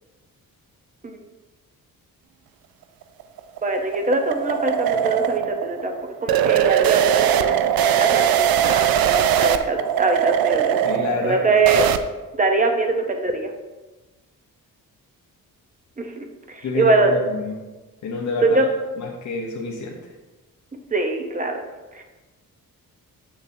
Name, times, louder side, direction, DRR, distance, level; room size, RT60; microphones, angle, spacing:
sound 1, 3.0-12.0, right 10 dB, 80° right, 0.5 m, -21 dB
voice 1, 3.6-7.5 7.8-10.8 11.2-11.9 12.4-13.5 16.0-17.1 18.4-18.6 20.9-21.6 21.9-22.0, right 3 dB, 20° right, 4 dB, 0.7 m, -22 dB
voice 2, 10.8-11.4 16.6-17.5 18.0-18.5 19.0-19.9, left 3 dB, 55° left, -1 dB, 0.8 m, -28 dB
6.9 x 6.7 x 2.7 m, 1.2 s
wide cardioid pair, 130°, 35 cm